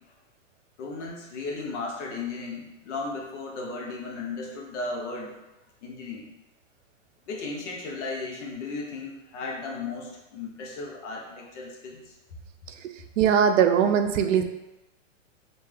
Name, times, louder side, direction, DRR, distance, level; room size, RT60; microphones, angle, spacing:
voice 1, 0.8-5.4 5.8-6.3 7.3-12.1, left 3 dB, 65° left, -1 dB, 1.0 m, -35 dB
voice 2, 13.2-14.4, right 8 dB, 75° right, 7 dB, 0.5 m, -20 dB
3.3 x 2.8 x 3.2 m, 0.97 s
hypercardioid pair, 145°, 38 cm